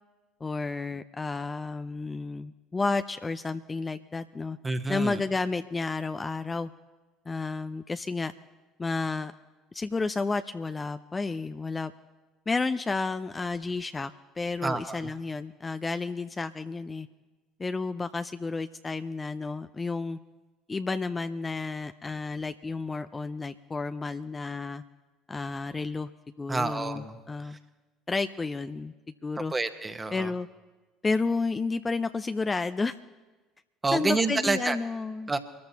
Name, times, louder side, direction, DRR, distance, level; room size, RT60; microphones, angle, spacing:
voice 1, 0.4-4.6 4.9-6.7 7.3-8.3 8.8-9.3 9.7-11.9 12.5-17.1 17.6-20.2 20.7-24.8 25.3-26.1 26.4-27.6 28.1-28.9 29.2-29.5 30.1-30.5 31.0-33.0 33.9-35.3, left 3 dB, 20° left, 10 dB, 0.5 m, -31 dB
voice 2, 4.6-5.2 14.6-15.0 26.5-27.6 29.5-30.3 33.8-34.8 35.3-35.4, right 3 dB, 20° right, 9 dB, 1.2 m, -28 dB
24.0 x 14.0 x 2.9 m, 1.2 s
figure-of-eight pair, 60°, 0 cm